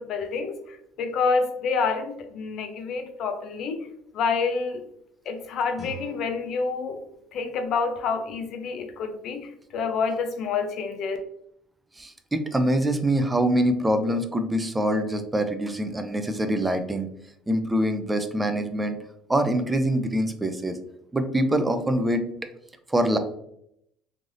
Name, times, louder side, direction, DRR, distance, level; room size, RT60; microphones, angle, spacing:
voice 1, 0.0-3.8 4.1-4.8 5.3-7.0 7.3-11.2, left 5 dB, 50° left, 6 dB, 0.5 m, -28 dB
Guitar, 5.7-8.5, right 1 dB, 15° left, 0.9 m, -46 dB
voice 2, 12.0-17.1 17.5-19.0 19.3-20.8 21.1-22.2 22.9-23.2, right 1 dB, 10° right, 8 dB, 0.3 m, -24 dB
3.2 x 2.5 x 2.4 m, 0.74 s
cardioid pair, 150°, 0 cm